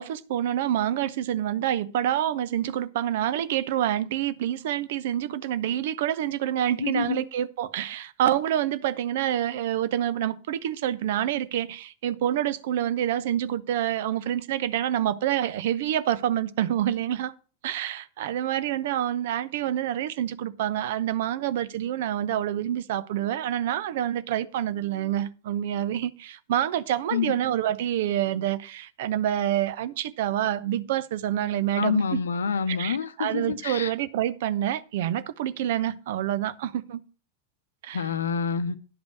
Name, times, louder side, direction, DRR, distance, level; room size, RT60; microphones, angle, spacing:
voice 1, 0.0-17.3 17.6-32.2 32.7-37.0 37.8-38.0, right 11 dB, 55° right, 0.6 m, -27 dB
voice 2, 6.8-7.2 27.1-27.3 31.8-33.9 37.9-38.8, left 6 dB, 70° left, 0.7 m, -27 dB
11.0 x 5.2 x 5.9 m
figure-of-eight pair, 90°, 0 cm